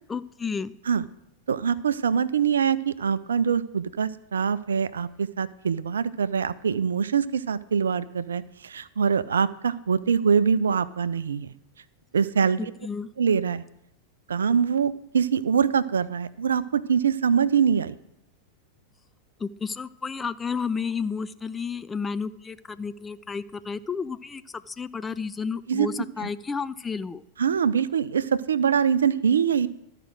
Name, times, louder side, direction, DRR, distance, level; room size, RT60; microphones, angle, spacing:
voice 1, 0.1-0.7 12.6-13.1 19.4-27.2, left 5 dB, 15° left, 14 dB, 0.3 m, -32 dB
voice 2, 1.5-11.5 12.1-12.7 13.2-13.6 14.3-17.9 25.7-26.3 27.4-29.7, right 7 dB, 70° right, 16 dB, 0.4 m, -24 dB
12.5 x 4.9 x 6.2 m, 0.80 s
figure-of-eight pair, 90°, 0 cm